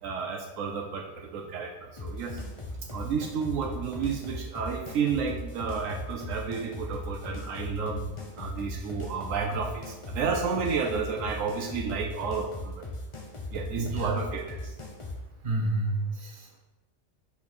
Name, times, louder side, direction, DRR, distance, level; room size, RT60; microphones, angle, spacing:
voice 1, 0.0-2.4 2.9-12.8 13.5-14.7, right 5 dB, 80° right, 2 dB, 1.1 m, -31 dB
sound 1, 2.0-15.2, left 1 dB, 30° left, 0.7 m, -38 dB
voice 2, 13.7-14.2 15.4-16.6, right 2 dB, 40° right, -2 dB, 1.3 m, -29 dB
5.8 x 4.3 x 4.3 m, 1.0 s
omnidirectional pair, 1.3 m